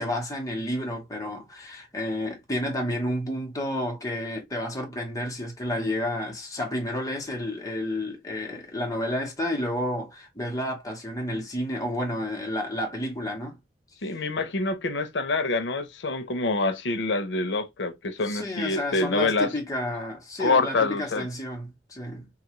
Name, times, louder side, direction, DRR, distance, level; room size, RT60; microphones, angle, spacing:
voice 1, 0.0-13.6 14.1-14.2 18.2-22.3, left 1 dB, 20° left, 1.1 m, -31 dB
voice 2, 14.0-19.5 20.4-21.3, left 3 dB, 85° left, 0.7 m, -26 dB
3.0 x 2.4 x 2.9 m
head